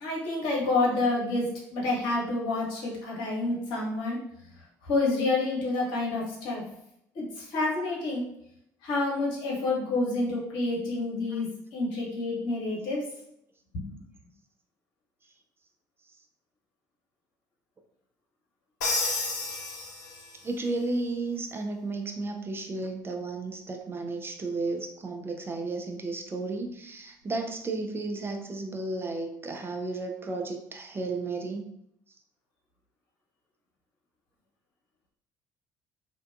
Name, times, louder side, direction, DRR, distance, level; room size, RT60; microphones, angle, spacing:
voice 1, 0.0-4.2 4.9-6.6 7.2-8.2 8.8-13.0 13.8-14.0, left 2 dB, 60° left, -3 dB, 0.9 m, -28 dB
Crash cymbal, 18.8-20.5, left 3 dB, 80° left, 0.5 m, -31 dB
voice 2, 20.4-31.7, right 3 dB, 25° right, 3 dB, 0.4 m, -33 dB
2.5 x 2.2 x 2.4 m, 0.75 s
figure-of-eight pair, 55°, 9 cm